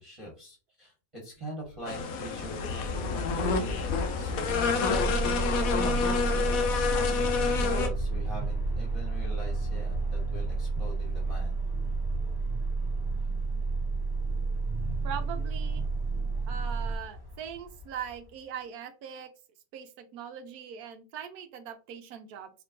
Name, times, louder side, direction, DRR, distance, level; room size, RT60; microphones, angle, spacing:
voice 1, 0.0-7.4 7.7-11.6, equal, 20° right, -5 dB, 1.3 m, -42 dB
sound 1, 1.9-7.9, left 5 dB, 65° left, 1.0 m, -29 dB
Aircraft, 2.4-18.3, left 3 dB, 30° left, 0.4 m, -39 dB
sound 2, 4.9-17.0, right 4 dB, 50° right, 1.1 m, -31 dB
voice 2, 15.0-15.8 16.5-19.3 19.7-22.5, right 8 dB, 70° right, 7 dB, 1.1 m, -41 dB
4.4 x 2.9 x 2.6 m, 0.33 s
omnidirectional pair, 1.8 m